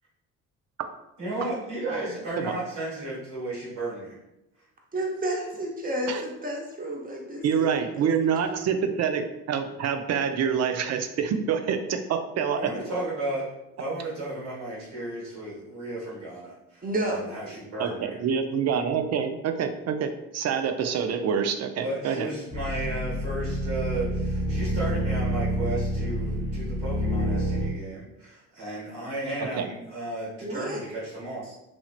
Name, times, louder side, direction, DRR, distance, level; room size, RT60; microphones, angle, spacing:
voice 1, 1.2-4.2 12.6-13.5 13.8-18.1 21.8-31.5, right 2 dB, 85° right, -7 dB, 1.4 m, -34 dB
voice 2, 4.9-8.1 8.4-8.6 16.8-17.2 30.4-30.8, right 1 dB, 20° right, -1 dB, 0.9 m, -31 dB
voice 3, 7.4-12.7 17.8-22.3 29.6-29.7, right 7 dB, 45° right, 8 dB, 0.4 m, -26 dB
sound 1, 22.5-27.7, equal, 30° left, 0.8 m, -28 dB
2.9 x 2.8 x 2.4 m, 0.91 s
hypercardioid pair, 55°, 40 cm